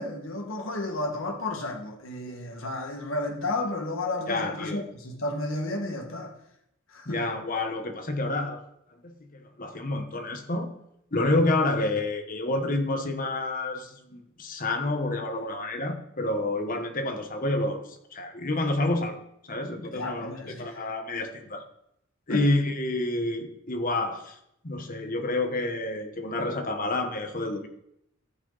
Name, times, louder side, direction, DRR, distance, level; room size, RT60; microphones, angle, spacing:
voice 1, 0.0-6.3 6.9-7.2 11.3-11.4 19.9-20.9 22.3-22.4, left 2 dB, 60° left, 3 dB, 1.7 m, -32 dB
voice 2, 4.3-4.8 7.0-8.6 9.0-10.7 11.1-19.2 19.5-21.6 22.3-24.4 24.6-27.7, left 2 dB, 40° left, 6 dB, 1.2 m, -29 dB
14.5 x 6.0 x 4.0 m, 0.77 s
head